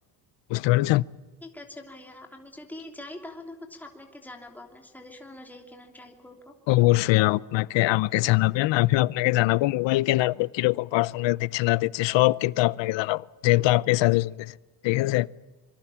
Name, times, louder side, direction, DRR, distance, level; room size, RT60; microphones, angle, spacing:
voice 1, 0.5-1.0 6.7-14.5 14.8-15.3, left 19 dB, 75° left, 0.7 m, -22 dB
voice 2, 1.4-6.5, left 1 dB, 5° left, 3.0 m, -44 dB
26.0 x 23.5 x 7.2 m
cardioid pair, 170°, 44 cm